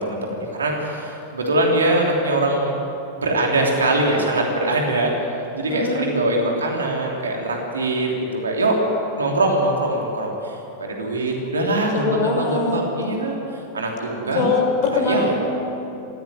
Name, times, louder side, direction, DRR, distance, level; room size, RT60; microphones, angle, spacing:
voice 1, 0.0-2.8 3.2-5.1 5.5-8.8 9.2-13.4 13.7-14.5 14.9-15.3, right 2 dB, 70° right, 0 dB, 3.2 m, -22 dB
voice 2, 5.7-6.0 11.9-12.8 14.3-15.3, left 4 dB, 40° left, 3 dB, 4.4 m, -22 dB
18.5 x 16.0 x 9.4 m, 2.9 s
figure-of-eight pair, 90°, 0 cm